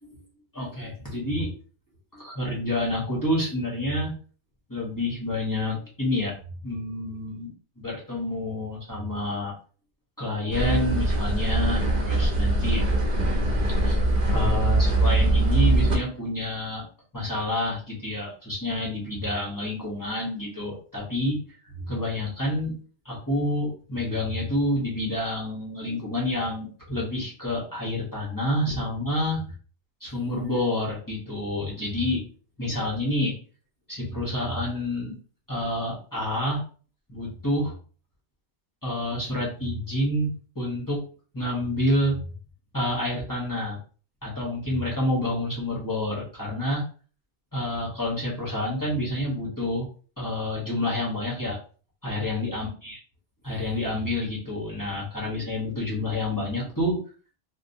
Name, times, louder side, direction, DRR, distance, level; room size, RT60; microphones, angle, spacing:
voice 1, 0.5-1.5 2.1-4.1 4.7-6.3 6.6-9.5 10.2-12.8 13.8-14.0 14.3-16.8 17.1-21.4 21.7-22.7 23.0-29.4 30.0-32.2 32.6-33.4 33.9-35.2 35.5-36.6 37.1-37.7 38.8-40.3 40.5-41.0 41.3-42.2 42.7-43.8 44.2-46.8 47.5-49.9 50.2-51.6 52.0-53.0 53.4-57.0, left 1 dB, 20° left, -5 dB, 0.8 m, -28 dB
sound 1, 10.5-16.0, right 2 dB, 50° right, 0.6 m, -22 dB
2.7 x 2.2 x 2.6 m, 0.39 s
omnidirectional pair, 1.2 m